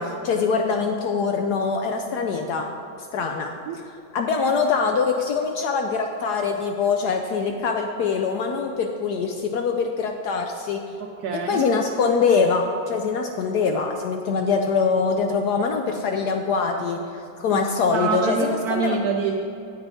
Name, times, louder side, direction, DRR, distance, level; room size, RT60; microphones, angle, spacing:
voice 1, 0.0-2.7 3.1-3.5 4.1-10.8 11.3-19.0, left 5 dB, 70° left, 4 dB, 1.0 m, -23 dB
voice 2, 11.0-11.7 17.5-17.6 17.9-19.3, right 5 dB, 70° right, 2 dB, 0.9 m, -26 dB
8.9 x 7.9 x 4.1 m, 2.7 s
omnidirectional pair, 2.1 m